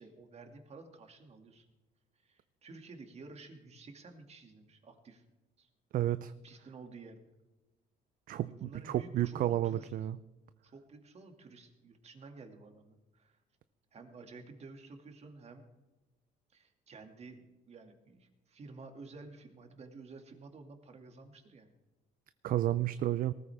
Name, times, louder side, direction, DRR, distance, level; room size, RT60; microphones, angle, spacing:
voice 1, 0.0-1.7 2.2-5.2 5.6-5.7 6.4-7.2 8.5-9.9 10.7-13.4 13.9-15.6 16.5-21.7, right 3 dB, 40° right, 5 dB, 2.3 m, -52 dB
voice 2, 5.9-6.3 8.3-10.2 22.4-23.3, right 13 dB, 55° right, 13 dB, 0.5 m, -31 dB
19.0 x 14.0 x 3.5 m, 1.1 s
cardioid pair, 110°, 17 cm